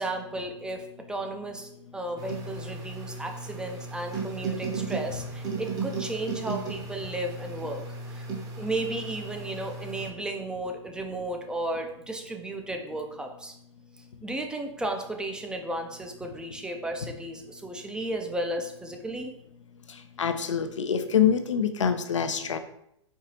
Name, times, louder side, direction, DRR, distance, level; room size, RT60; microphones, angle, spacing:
voice 1, 0.0-8.3 8.6-13.5 14.0-19.3, right 1 dB, 5° right, 4 dB, 0.6 m, -34 dB
sound 1, 2.2-10.1, right 4 dB, 25° right, 1.0 m, -35 dB
voice 2, 20.2-22.6, left 7 dB, 80° left, 9 dB, 0.6 m, -25 dB
4.7 x 3.7 x 2.9 m, 0.75 s
hypercardioid pair, 110°, 16 cm